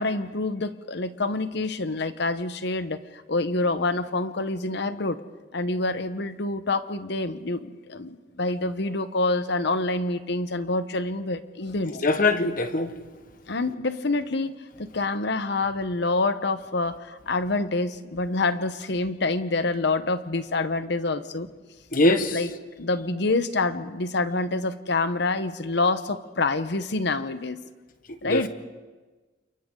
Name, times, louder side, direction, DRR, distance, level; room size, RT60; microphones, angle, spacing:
voice 1, 0.0-3.0 3.3-5.2 5.5-12.0 13.5-14.5 14.8-21.5 22.3-22.5 22.8-27.6 28.2-28.5, left 3 dB, 65° left, 12 dB, 1.0 m, -27 dB
voice 2, 11.9-12.9 21.9-22.4 28.2-28.5, left 2 dB, 50° left, 9 dB, 1.3 m, -22 dB
29.0 x 27.5 x 3.8 m, 1.3 s
head